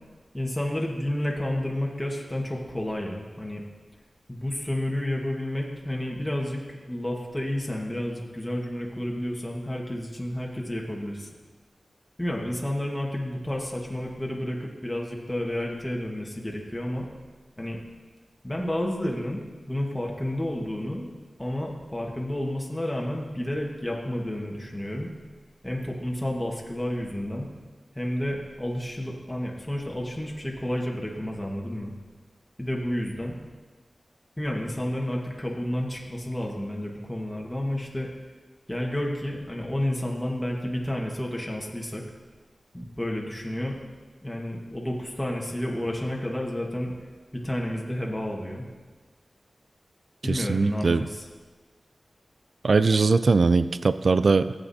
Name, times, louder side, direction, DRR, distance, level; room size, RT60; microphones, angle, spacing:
voice 1, 0.3-3.6 4.3-11.3 12.2-17.1 17.6-17.8 18.4-19.4 19.7-21.1 21.4-25.1 25.6-27.5 27.9-31.9 32.6-33.4 34.4-38.1 38.7-42.0 42.7-43.8 44.2-46.9 47.3-48.6 50.2-51.2, left 1 dB, 15° left, -1 dB, 1.5 m, -30 dB
voice 2, 50.2-51.1 52.6-54.5, right 4 dB, 65° right, 14 dB, 0.3 m, -21 dB
15.0 x 8.1 x 2.8 m, 1.4 s
wide cardioid pair, 65°, 0 cm